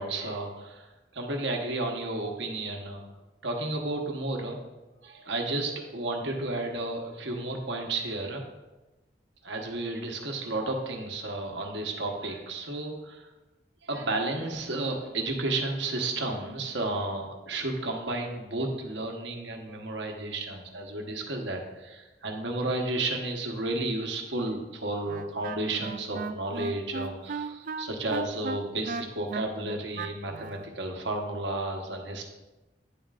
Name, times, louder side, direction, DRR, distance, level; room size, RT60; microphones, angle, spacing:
voice 1, 0.0-3.0 3.4-4.6 5.0-8.4 9.4-13.3 13.8-32.2, right 2 dB, 85° right, 2 dB, 1.1 m, -32 dB
Wind instrument woodwind instrument, 25.1-30.7, right 4 dB, 50° right, 0.3 m, -36 dB
9.4 x 7.4 x 2.4 m, 1.1 s
head